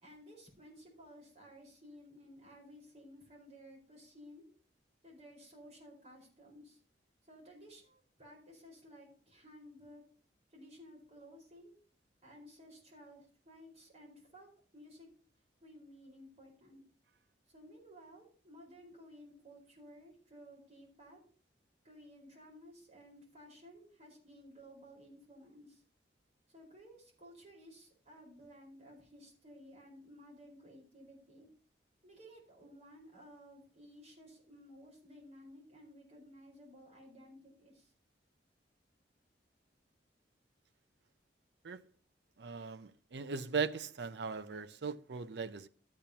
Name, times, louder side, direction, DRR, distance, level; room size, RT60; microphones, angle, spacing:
voice 1, 0.0-4.5 5.0-6.8 7.2-10.0 10.5-11.7 12.2-14.5 14.7-15.1 15.6-16.8 17.5-21.2 21.8-25.8 26.5-31.5 32.0-37.9, equal, 40° right, 4.6 m, -56 dB
voice 2, 42.4-45.7, right 5 dB, 65° right, 0.5 m, -38 dB
13.5 x 8.6 x 2.9 m
head